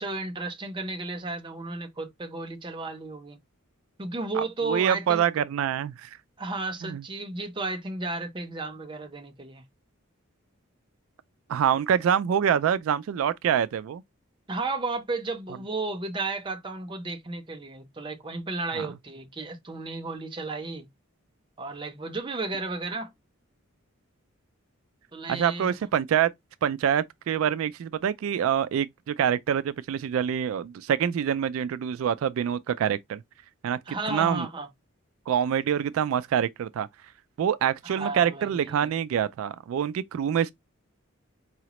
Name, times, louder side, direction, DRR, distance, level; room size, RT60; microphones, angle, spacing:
voice 1, 0.0-3.4 4.0-5.2 6.4-9.6 14.5-20.9 21.6-23.1 25.1-25.8 33.9-34.7 37.8-38.9, right 3 dB, 25° right, 0.5 m, -33 dB
voice 2, 4.3-6.2 6.8-7.0 11.5-14.0 18.7-18.9 25.3-26.3 26.6-33.2 33.6-34.5 35.3-36.9 37.4-40.5, right 8 dB, 85° right, 0.3 m, -26 dB
4.8 x 2.1 x 2.9 m
head